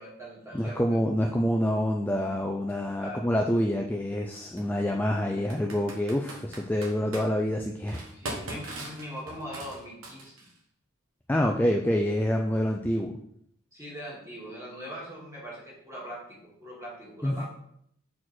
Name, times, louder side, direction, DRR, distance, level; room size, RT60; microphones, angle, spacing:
voice 1, 0.0-1.0 2.9-3.2 8.1-10.4 13.7-17.4, equal, 15° right, -5 dB, 2.1 m, -41 dB
voice 2, 0.5-8.1 11.3-13.1 17.2-17.4, equal, 10° left, 2 dB, 0.3 m, -27 dB
Computer keyboard, 2.7-2.8 4.4-4.6 5.5-7.3 7.9-10.6, right 2 dB, 85° right, 1.4 m, -40 dB
6.2 x 4.4 x 4.2 m, 0.71 s
head